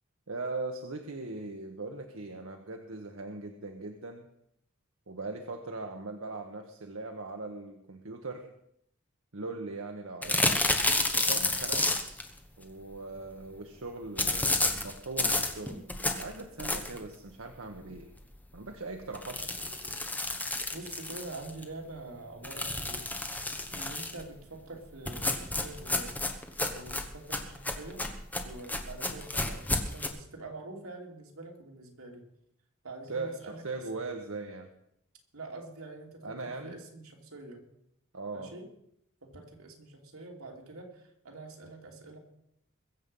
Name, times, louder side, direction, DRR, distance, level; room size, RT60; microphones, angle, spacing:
voice 1, 0.3-4.3 5.1-8.5 9.3-10.6 11.1-12.2 12.6-15.8 16.2-18.1 18.5-19.6 33.1-34.7 36.2-36.7 38.1-38.5, right 3 dB, 65° right, 3 dB, 1.2 m, -40 dB
sound 1, 10.2-12.3 14.2-17.1 17.6-17.7 18.0-18.1 18.4-18.5 19.1-21.6 22.4-24.2 25.1-30.1, left 2 dB, 10° left, 1.1 m, -31 dB
voice 2, 20.7-23.1 23.7-26.2 26.6-28.0 28.4-32.3 32.8-33.8 35.3-37.7 38.3-38.7 39.2-42.2, right 2 dB, 80° right, 1 dB, 2.9 m, -45 dB
22.0 x 7.6 x 5.5 m, 0.75 s
head